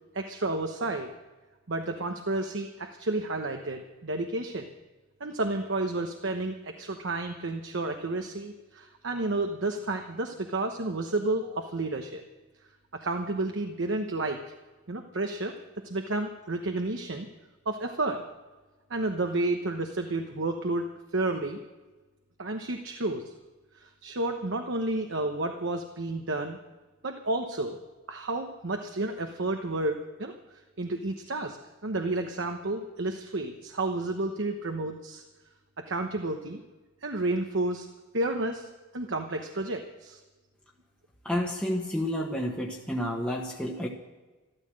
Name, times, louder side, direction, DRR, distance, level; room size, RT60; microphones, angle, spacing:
voice 1, 0.1-1.1 1.7-4.7 5.2-12.2 12.9-14.5 14.9-15.5 15.8-17.3 17.7-18.2 18.9-20.9 21.1-21.6 22.4-23.3 23.7-26.6 27.0-27.8 28.1-30.3 30.8-31.6 31.8-35.2 35.8-36.6 37.0-37.9 38.1-40.2, right 2 dB, 65° right, 4 dB, 1.1 m, -31 dB
voice 2, 41.2-43.9, equal, 5° left, -2 dB, 1.4 m, -30 dB
13.5 x 13.5 x 7.6 m, 1.2 s
head